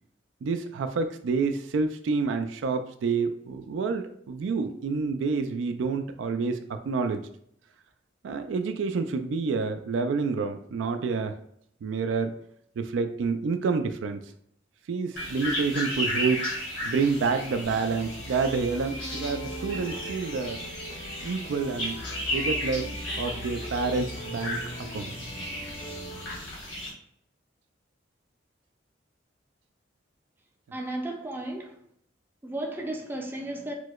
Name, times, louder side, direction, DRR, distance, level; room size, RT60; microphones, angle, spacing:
voice 1, 0.4-7.2 8.2-11.3 11.8-12.3 12.8-14.2 14.9-16.4 16.9-20.6 21.2-22.0 22.3-22.9 23.2-24.6 24.9-25.1, right 4 dB, 90° right, 0.3 m, -28 dB
sound 1, 15.2-26.9, left 1 dB, 80° left, 1.3 m, -34 dB
sound 2, 17.6-26.4, equal, 35° left, 0.5 m, -41 dB
voice 2, 30.7-31.8 32.4-33.7, right 1 dB, 10° right, 0.4 m, -34 dB
4.6 x 2.0 x 2.3 m
head